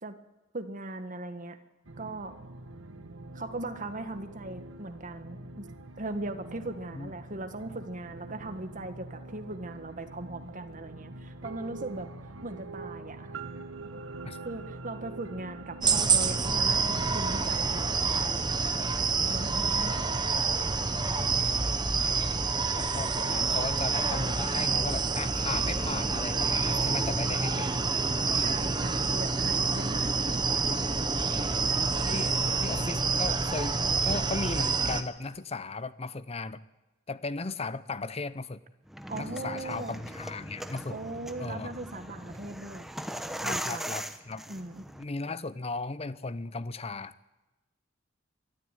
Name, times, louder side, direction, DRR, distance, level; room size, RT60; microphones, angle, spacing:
voice 1, 0.5-1.6 2.0-2.4 3.3-5.6 6.0-12.1 12.4-13.4 14.4-18.2 18.8-18.9 19.3-20.3 28.4-30.2 32.1-32.4 39.1-39.9 40.9-42.9 43.4-44.0 44.5-44.9, right 2 dB, 40° right, 1.6 m, -39 dB
sound 1, 1.8-17.3, right 2 dB, 75° right, 1.4 m, -44 dB
sound 2, 15.8-35.0, right 4 dB, 20° right, 1.1 m, -27 dB
voice 2, 22.7-27.7 31.2-32.3 32.6-36.6 37.1-38.6 39.1-41.0 41.4-41.7 43.4-44.5 45.0-47.1, left 3 dB, 30° left, 0.7 m, -36 dB
sound 3, 38.9-45.0, equal, ahead, 1.0 m, -39 dB
22.5 x 13.0 x 9.1 m
head